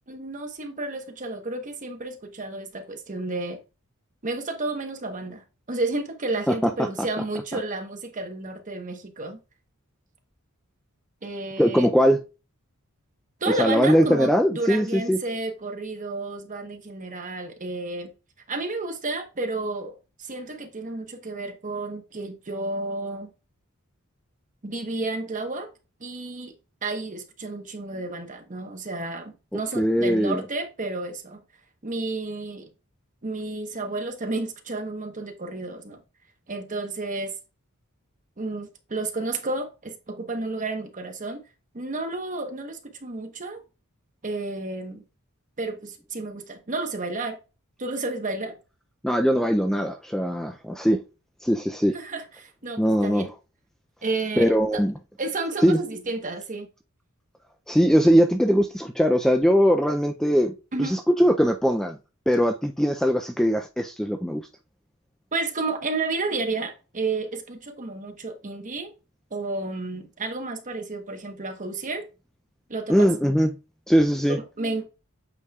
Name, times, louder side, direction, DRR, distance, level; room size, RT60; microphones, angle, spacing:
voice 1, 0.1-3.6 4.2-9.4 11.2-11.9 13.4-18.1 18.5-23.3 24.6-25.7 26.0-26.5 26.8-31.4 31.8-32.7 33.2-36.0 36.5-37.4 38.4-41.4 41.7-43.6 44.2-45.0 45.6-47.4 47.8-48.6 51.9-53.3 54.0-54.8 55.2-56.7 60.7-61.0 65.3-68.9 69.3-72.1 72.7-73.4 74.3-74.8, right 3 dB, 35° right, 1.1 m, -31 dB
voice 2, 11.6-12.2 13.6-15.2 29.8-30.4 49.0-51.0 51.4-52.0 52.8-53.3 54.4-54.9 55.6-55.8 57.7-60.5 60.8-62.0 62.3-64.4 72.9-73.5 73.9-74.4, equal, ahead, 0.3 m, -21 dB
8.3 x 5.0 x 2.3 m
head